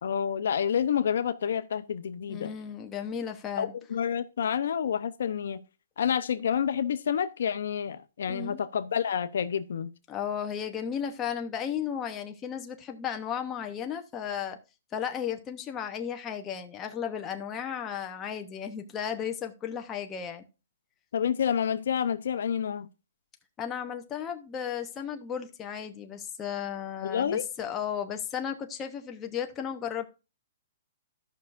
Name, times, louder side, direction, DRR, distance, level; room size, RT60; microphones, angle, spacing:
voice 1, 0.0-2.5 3.6-5.6 6.0-9.9 21.1-22.9 27.0-27.4, left 8 dB, 75° left, 0.7 m, -29 dB
voice 2, 2.3-3.7 8.3-8.6 10.1-14.6 14.9-20.4 23.6-30.1, left 8 dB, 20° left, 0.8 m, -34 dB
15.5 x 5.6 x 2.5 m
hypercardioid pair, 155°, 0 cm